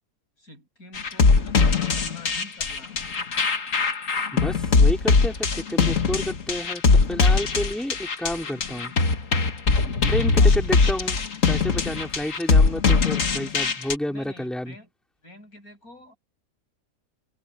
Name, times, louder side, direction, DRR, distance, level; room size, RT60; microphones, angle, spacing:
voice 1, 0.4-3.0 10.2-10.6 14.1-14.9 15.2-16.2, left 1 dB, 80° left, 8.3 m, -46 dB
sound 1, 1.0-13.9, left 4 dB, 65° left, 2.0 m, -21 dB
voice 2, 4.3-8.9 10.1-11.2 11.5-14.8, left 1 dB, ahead, 3.7 m, -30 dB
omnidirectional pair, 1.5 m